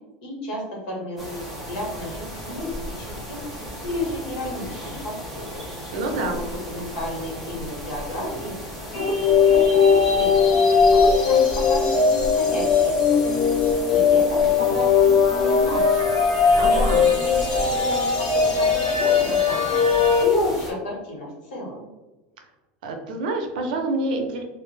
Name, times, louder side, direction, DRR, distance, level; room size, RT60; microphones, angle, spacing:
voice 1, 0.2-3.4 3.8-5.7 6.2-8.6 8.9-10.6 10.9-13.4 13.9-16.1 16.7-19.8 20.2-21.9, left 1 dB, 80° left, -2 dB, 1.3 m, -32 dB
sound 1, 1.2-20.7, left 1 dB, ahead, 0.5 m, -35 dB
voice 2, 5.9-6.4 16.5-17.1 22.8-24.4, right 2 dB, 90° right, 3 dB, 0.6 m, -27 dB
sound 2, 8.9-20.2, left 5 dB, 60° left, 0.8 m, -19 dB
2.4 x 2.1 x 3.1 m, 1.0 s
supercardioid pair, 180°, 5 cm